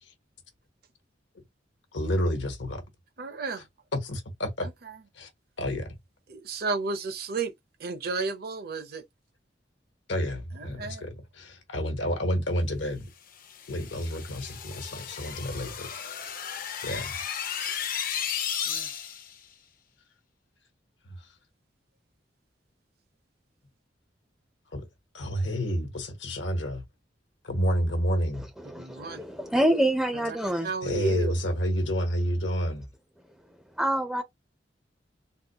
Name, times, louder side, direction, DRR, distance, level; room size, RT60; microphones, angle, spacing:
voice 1, 1.9-2.8 4.0-4.7 5.2-5.3 5.6-5.9 10.1-13.1 13.7-15.9 16.2-16.3 16.8-17.1 21.0-21.2 24.7-24.9 25.1-26.8 27.4-28.4 30.8-32.9, equal, 80° left, 1.1 m, -29 dB
voice 2, 3.2-3.7 4.6-5.0 6.3-7.5 7.8-9.0 10.5-11.1 17.6-17.9 18.7-18.9 28.6-29.2 30.2-30.4 30.6-31.4, right 4 dB, 55° right, 0.6 m, -33 dB
sound 1, 13.4-19.3, left 8 dB, 50° left, 0.6 m, -34 dB
voice 3, 28.3-30.7 33.7-34.2, right 1 dB, ahead, 0.4 m, -27 dB
3.6 x 2.2 x 2.8 m
head